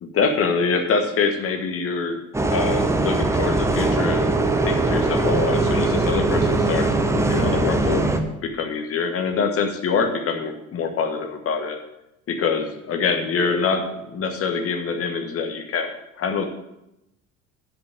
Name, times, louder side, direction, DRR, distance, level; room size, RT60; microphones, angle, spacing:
voice 1, 0.0-2.2 2.5-4.4 4.6-8.1 8.4-11.8 12.3-15.9 16.2-16.5, left 5 dB, 30° left, 5 dB, 1.4 m, -25 dB
Bus, 2.3-8.2, right 2 dB, 5° right, 0.8 m, -21 dB
10.5 x 5.2 x 7.4 m, 0.87 s
figure-of-eight pair, 65°, 42 cm